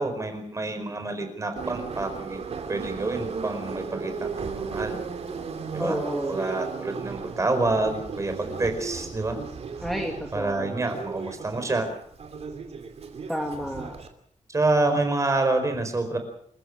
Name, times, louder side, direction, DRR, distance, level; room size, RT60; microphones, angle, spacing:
voice 1, 0.0-2.4 2.7-5.0 5.7-6.0 6.3-9.4 10.3-11.9 14.5-16.2, right 2 dB, 25° right, 7 dB, 4.8 m, -27 dB
Subway metro underground, 1.6-14.1, right 5 dB, 55° right, 2.8 m, -35 dB
voice 2, 5.8-6.5 9.8-10.8 13.3-13.9, equal, ahead, 1 dB, 2.4 m, -31 dB
27.0 x 15.5 x 7.5 m, 0.67 s
wide cardioid pair, 175°, 13 cm